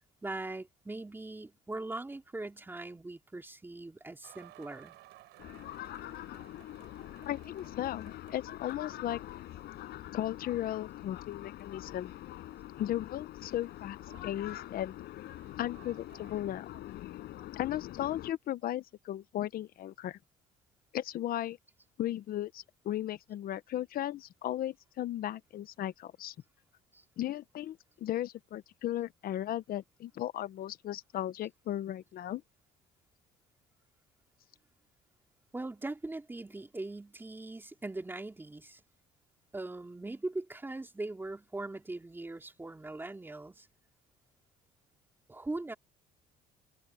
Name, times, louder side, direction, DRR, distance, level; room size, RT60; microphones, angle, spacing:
voice 1, 0.2-5.0 26.9-27.0 35.5-38.8 39.5-43.7 45.3-45.7, right 2 dB, 10° right, 3.2 m, -40 dB
sound 1, 4.2-17.5, right 16 dB, 80° right, 7.6 m, -60 dB
sound 2, 5.4-18.3, left 15 dB, 75° left, 5.8 m, -45 dB
voice 2, 7.3-9.2 10.1-12.1 12.8-14.0 14.2-14.9 15.6-16.7 17.5-20.2 20.9-21.6 22.0-26.3 27.2-32.4, left 12 dB, 60° left, 1.0 m, -36 dB
cardioid pair, 110°, 17 cm